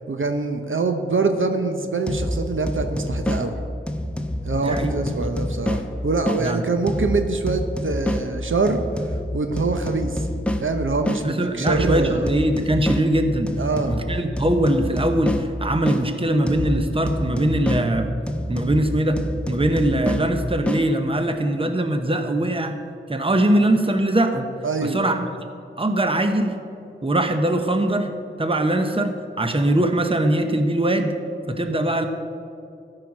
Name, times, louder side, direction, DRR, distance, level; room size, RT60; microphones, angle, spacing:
voice 1, 0.0-3.6 4.4-8.8 9.3-10.3 10.6-12.3 13.6-14.2 24.6-25.0, right 3 dB, 70° right, 6 dB, 0.7 m, -24 dB
sound 1, 2.1-6.4 6.9-11.2 11.7-16.0 16.5-20.8, left 1 dB, 5° left, 0.7 m, -27 dB
voice 2, 4.6-5.0 6.4-6.6 11.2-13.5 13.9-18.1 18.5-19.2 19.5-22.8 23.1-24.5 24.8-25.2 25.8-26.6 27.0-28.1 28.4-31.1 31.5-32.1, right 1 dB, 25° right, 6 dB, 0.8 m, -21 dB
13.5 x 4.9 x 6.0 m, 2.5 s
wide cardioid pair, 55°, 21 cm